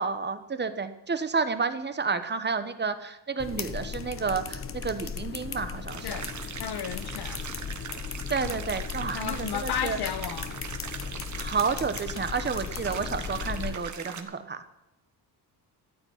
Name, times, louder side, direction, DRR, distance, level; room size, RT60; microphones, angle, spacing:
voice 1, 0.0-6.2 8.3-10.0 11.4-14.6, right 5 dB, 25° right, 1.1 m, -30 dB
sound 1, 3.4-13.7, left 6 dB, 30° left, 0.9 m, -37 dB
sound 2, 5.9-14.2, right 7 dB, 45° right, 1.5 m, -40 dB
voice 2, 6.6-7.4 9.1-10.5 10.8-10.9, left 9 dB, 60° left, 1.3 m, -33 dB
14.0 x 8.9 x 7.3 m
cardioid pair, 150°, 42 cm